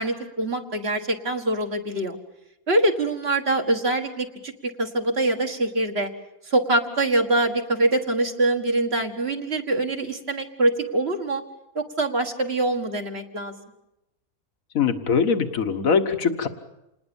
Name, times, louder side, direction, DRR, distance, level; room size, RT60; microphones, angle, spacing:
voice 1, 0.0-2.2 2.7-6.1 6.4-11.4 11.8-13.5, right 2 dB, 45° right, 4 dB, 2.0 m, -24 dB
voice 2, 14.8-16.5, left 6 dB, 70° left, 9 dB, 1.9 m, -22 dB
27.5 x 20.0 x 7.1 m, 0.90 s
omnidirectional pair, 1.5 m